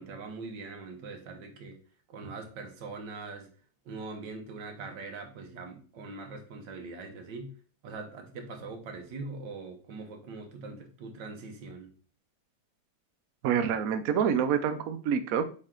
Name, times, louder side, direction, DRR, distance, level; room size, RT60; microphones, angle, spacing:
voice 1, 0.0-1.8 2.1-3.5 3.8-7.5 7.8-11.9, right 3 dB, 65° right, 4 dB, 1.7 m, -42 dB
voice 2, 13.4-15.4, right 7 dB, 80° right, 9 dB, 0.7 m, -27 dB
6.3 x 4.3 x 3.7 m, 0.41 s
omnidirectional pair, 2.2 m